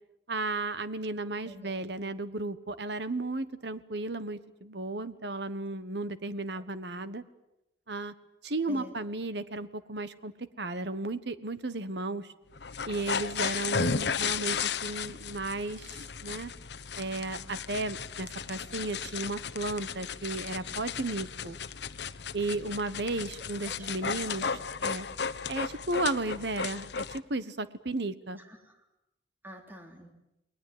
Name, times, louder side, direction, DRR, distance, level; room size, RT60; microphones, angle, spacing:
voice 1, 0.3-7.2 7.9-8.1 8.4-12.3 12.8-16.5 17.0-21.6 22.3-25.1 25.5-28.4, right 2 dB, 65° right, 14 dB, 1.4 m, -34 dB
voice 2, 1.5-1.9 8.7-8.9 13.8-13.9 23.7-23.8 24.4-24.6 29.4-30.1, right 1 dB, 10° right, 3 dB, 3.6 m, -47 dB
sound 1, 12.5-27.2, left 6 dB, 65° left, 1.0 m, -35 dB
29.5 x 21.0 x 9.5 m, 0.90 s
head